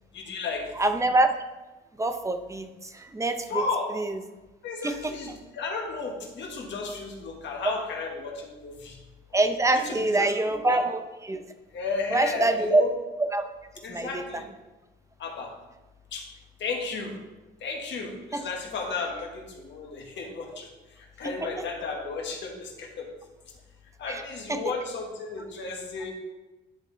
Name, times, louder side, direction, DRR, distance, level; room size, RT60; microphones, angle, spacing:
voice 1, 0.1-0.7 3.5-3.9 4.6-9.0 9.7-10.8 11.7-12.9 13.8-14.4 15.2-15.5 16.1-16.3 16.6-17.2 17.6-20.7 21.0-23.1 24.0-26.1, left 4 dB, 65° left, 1 dB, 1.5 m, -33 dB
voice 2, 0.8-1.3 2.0-3.6 3.9-4.2 4.8-5.1 9.3-11.4 12.1-12.8 13.2-13.5 13.9-14.4 18.3-18.4 21.2-21.5 24.1-24.2 24.5-24.6, right 2 dB, 15° right, 8 dB, 0.7 m, -25 dB
10.0 x 3.6 x 4.0 m, 1.1 s
cardioid pair, 90°, 20 cm